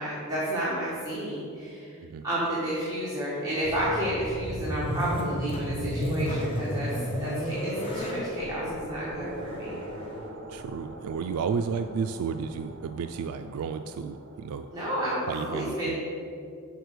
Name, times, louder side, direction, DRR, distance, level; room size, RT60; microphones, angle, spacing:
voice 1, 0.0-1.9 2.2-6.9 7.2-9.8 14.7-16.0, right 1 dB, 15° right, -8 dB, 1.4 m, -31 dB
sound 1, 3.6-11.4, equal, 25° left, 1.2 m, -33 dB
sound 2, 8.4-15.2, right 2 dB, 55° right, 0.7 m, -44 dB
voice 2, 10.5-14.7 15.3-16.0, right 6 dB, 85° right, 8 dB, 0.3 m, -32 dB
6.1 x 5.0 x 6.6 m, 2.5 s
head